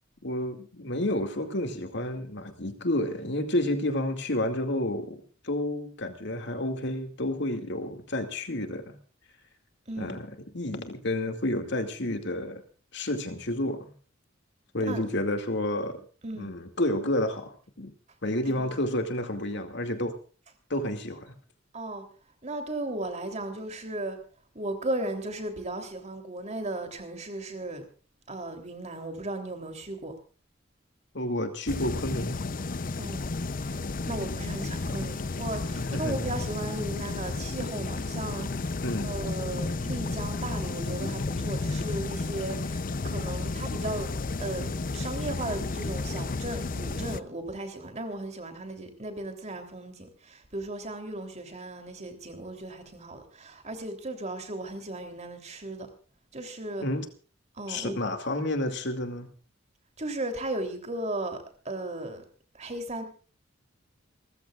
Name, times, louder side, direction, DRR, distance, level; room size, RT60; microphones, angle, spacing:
voice 1, 0.2-9.0 10.0-12.6 12.9-13.9 14.7-16.0 16.3-17.9 18.2-20.2 20.7-21.4 31.1-32.4 35.7-36.3 38.8-39.2 56.8-57.1 57.7-59.3, left 1 dB, 60° left, 2.4 m, -30 dB
voice 2, 9.9-10.2 14.8-15.0 16.2-16.5 18.5-18.7 21.7-22.0 22.4-24.2 24.5-27.8 28.3-30.1 33.0-33.3 33.6-38.7 39.0-44.1 44.4-55.9 56.3-56.8 57.5-58.0 60.0-62.2 62.5-63.0, right 2 dB, 35° right, 3.3 m, -36 dB
sound 1, 31.7-47.2, left 3 dB, 45° left, 0.6 m, -32 dB
29.0 x 14.5 x 2.5 m
head